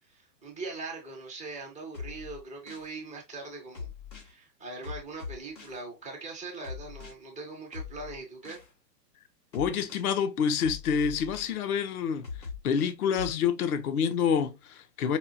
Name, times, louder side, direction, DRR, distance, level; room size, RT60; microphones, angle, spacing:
voice 1, 0.1-3.9 4.2-8.6, right 3 dB, 10° left, 0.3 m, -41 dB
sound 1, 1.9-2.9 3.7-4.3 4.8-5.8 6.6-7.1 7.7-8.7 9.5-10.1 10.6-11.6 12.2-13.4, left 5 dB, 85° left, 2.3 m, -41 dB
voice 2, 9.5-15.2, left 7 dB, 60° left, 0.8 m, -28 dB
5.4 x 2.3 x 2.6 m
hypercardioid pair, 120°, 49 cm